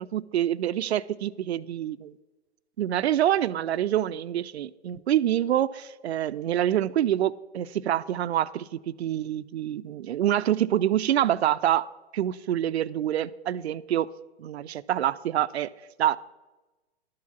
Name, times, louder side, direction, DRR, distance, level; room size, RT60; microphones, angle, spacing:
voice 1, 0.0-2.1 2.8-11.9 12.1-14.1 14.4-15.7 16.0-16.2, right 11 dB, 75° right, 18 dB, 0.5 m, -26 dB
11.5 x 4.8 x 7.1 m, 1.1 s
hypercardioid pair, 130°, 33 cm